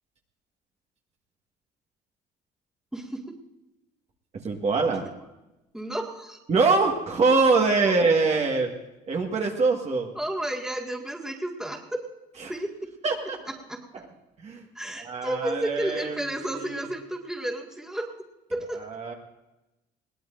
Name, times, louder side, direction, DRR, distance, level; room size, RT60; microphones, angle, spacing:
voice 1, 2.9-3.4 4.9-5.0 5.7-6.4 10.2-12.0 12.5-12.7 13.7-13.8 14.8-18.1 18.5-18.8, right 1 dB, 5° right, 0 dB, 2.0 m, -32 dB
voice 2, 4.3-5.0 6.5-8.7 9.1-10.1 12.4-12.5 13.0-13.4 13.9-14.0 14.4-14.6 14.9-16.9 18.7-19.1, right 4 dB, 40° right, 2 dB, 1.7 m, -24 dB
21.5 x 17.5 x 2.6 m, 0.97 s
cardioid pair, 110°, 17 cm